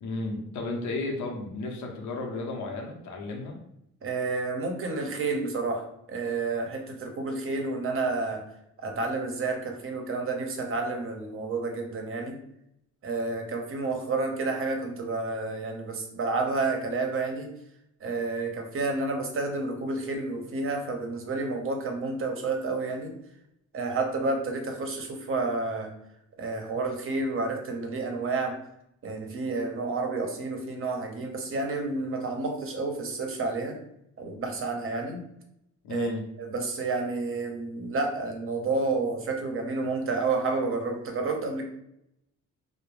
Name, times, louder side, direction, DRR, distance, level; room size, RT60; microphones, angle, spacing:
voice 1, 0.0-3.6 35.8-36.3, left 2 dB, 70° left, 1 dB, 0.7 m, -33 dB
voice 2, 4.0-8.4 8.8-12.4 13.0-17.5 18.0-23.1 23.7-25.9 26.4-28.6 29.0-33.8 34.2-35.2 35.9-36.1 36.4-41.6, right 3 dB, 45° right, 3 dB, 0.7 m, -30 dB
2.2 x 2.0 x 3.2 m, 0.78 s
cardioid pair, 90°, 30 cm